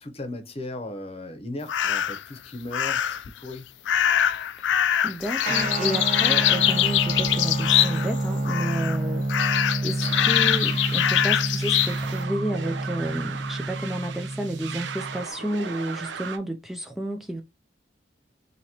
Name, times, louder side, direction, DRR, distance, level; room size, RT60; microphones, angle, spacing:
voice 1, 0.0-3.7, left 2 dB, 35° left, 0.8 m, -37 dB
sound 1, 1.7-2.2 2.7-3.3 3.8-8.2 8.4-9.0 9.3-11.9, left 10 dB, 80° left, 0.3 m, -23 dB
voice 2, 5.0-9.2 9.8-17.4, right 1 dB, ahead, 0.4 m, -31 dB
Guitar, 5.4-15.3, right 2 dB, 40° right, 1.4 m, -29 dB
sound 2, 10.0-16.4, right 6 dB, 80° right, 0.6 m, -37 dB
4.3 x 2.8 x 2.8 m
head